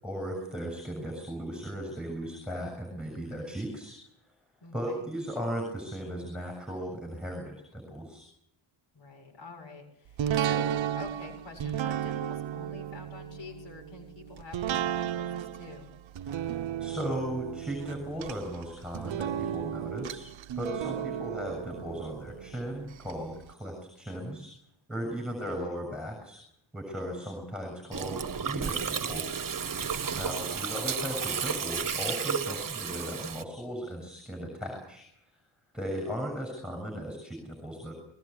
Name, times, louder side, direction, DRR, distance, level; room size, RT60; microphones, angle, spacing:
voice 1, 0.0-4.0 4.7-8.3 16.2-20.3 20.6-24.5 24.9-26.4 26.7-29.4 30.1-35.0 35.7-37.9, equal, ahead, 1 dB, 6.9 m, -37 dB
voice 2, 4.6-5.1 8.9-15.9 20.8-21.3 25.1-25.6 30.0-30.9, left 4 dB, 60° left, 4 dB, 7.1 m, -47 dB
sound 1, 10.2-23.1 23.5-23.6, right 10 dB, 65° right, 0.9 m, -34 dB
Gurgling, 27.9-33.4, right 6 dB, 40° right, 1.3 m, -32 dB
21.0 x 20.5 x 8.6 m, 0.77 s
wide cardioid pair, 135°, 49 cm